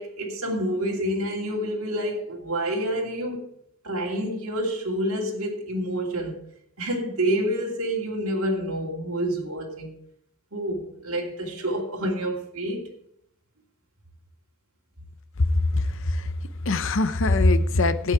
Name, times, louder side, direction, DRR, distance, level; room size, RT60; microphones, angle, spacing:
voice 1, 0.0-3.5 3.8-6.4 6.8-9.9 10.5-12.9, right 1 dB, 70° right, 2.8 m, -28 dB
voice 2, 15.7-16.3 16.7-18.1, left 2 dB, 60° left, 0.7 m, -22 dB
12.5 x 8.6 x 4.7 m
head